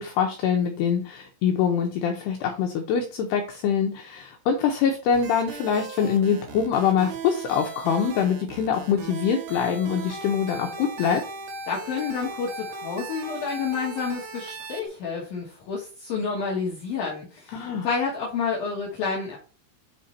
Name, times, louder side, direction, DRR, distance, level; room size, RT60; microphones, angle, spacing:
voice 1, 0.0-11.2 17.5-17.9, left 7 dB, 90° left, 3 dB, 2.3 m, -24 dB
sound 1, 5.1-14.9, right 4 dB, 75° right, 3.3 m, -38 dB
voice 2, 11.7-19.4, left 5 dB, 70° left, -3 dB, 2.3 m, -29 dB
9.0 x 3.7 x 4.2 m, 0.37 s
omnidirectional pair, 5.8 m